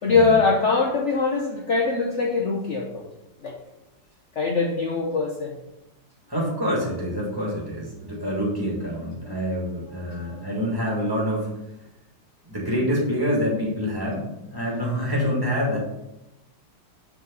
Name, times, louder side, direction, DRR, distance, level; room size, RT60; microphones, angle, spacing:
voice 1, 0.0-3.1 3.4-3.5 4.3-5.6 9.2-9.5 10.1-10.4, left 4 dB, 65° left, 0 dB, 0.7 m, -23 dB
voice 2, 6.3-11.5 12.5-15.8, equal, 10° right, -4 dB, 2.3 m, -26 dB
7.3 x 7.3 x 4.0 m, 0.91 s
omnidirectional pair, 2.4 m